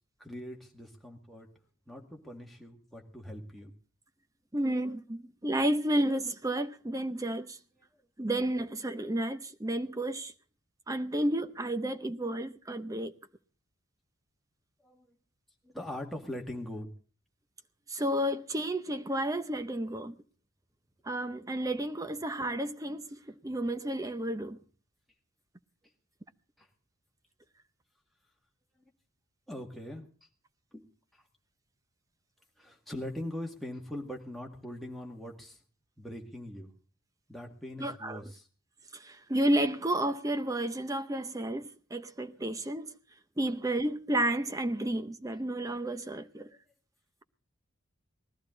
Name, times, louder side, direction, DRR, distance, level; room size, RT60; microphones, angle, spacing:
voice 1, 0.2-1.5 1.9-3.7 14.8-15.2 15.6-16.9 26.6-26.7 29.5-30.1 30.7-31.2 32.6-35.6 36.0-36.7 37.3-38.5, left 1 dB, ahead, 2.0 m, -42 dB
voice 2, 4.5-7.6 8.2-10.3 10.9-13.1 17.9-20.1 21.1-24.6 37.8-38.2 38.9-42.9 43.4-46.5, right 1 dB, 15° right, 0.7 m, -31 dB
20.0 x 14.0 x 3.9 m
head